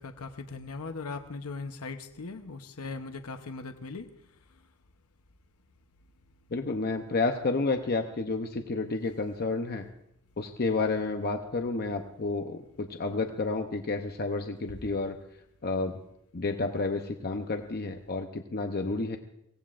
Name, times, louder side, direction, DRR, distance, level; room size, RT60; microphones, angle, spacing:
voice 1, 0.0-4.1, left 4 dB, 85° left, 7 dB, 0.9 m, -39 dB
voice 2, 6.5-9.8 10.4-15.2 15.6-16.0 16.3-19.2, left 3 dB, 45° left, 5 dB, 0.7 m, -30 dB
24.0 x 17.5 x 2.5 m, 0.80 s
head